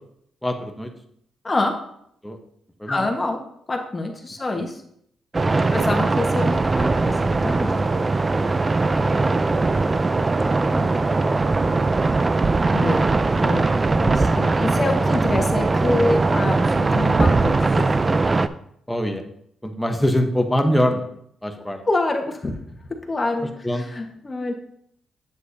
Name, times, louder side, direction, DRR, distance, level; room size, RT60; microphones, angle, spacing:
voice 1, 0.4-0.9 2.2-2.4 2.8-3.0 5.4-5.7 7.6-7.9 8.4-9.8 10.1-10.2 10.7-11.9 14.2-14.5 18.9-19.2 19.6-21.1 21.4-21.8 23.6-23.8, equal, 5° left, 4 dB, 1.0 m, -26 dB
voice 2, 1.4-1.8 2.9-3.4 3.7-4.8 5.7-7.7 10.7-10.9 12.7-13.1 13.4-13.7 14.0-18.0 21.8-22.5 22.9-24.5, left 2 dB, 25° left, 3 dB, 1.3 m, -26 dB
sound 1, 5.3-18.5, right 3 dB, 25° right, 0.4 m, -20 dB
8.3 x 7.4 x 2.7 m, 0.70 s
cardioid pair, 95°, 0 cm